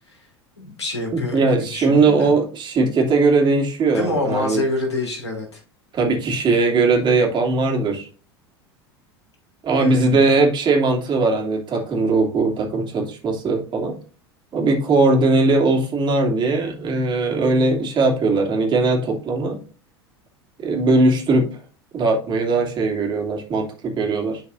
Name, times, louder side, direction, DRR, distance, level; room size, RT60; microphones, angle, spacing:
voice 1, 0.6-2.3 3.9-5.6 9.8-10.2, left 2 dB, 80° left, 0 dB, 2.6 m, -27 dB
voice 2, 1.1-4.6 5.9-8.1 9.6-14.0 14.5-19.6 20.6-21.6 21.9-24.4, right 3 dB, 35° right, 0 dB, 2.6 m, -19 dB
11.0 x 4.6 x 2.6 m, 0.37 s
figure-of-eight pair, 80°, 14 cm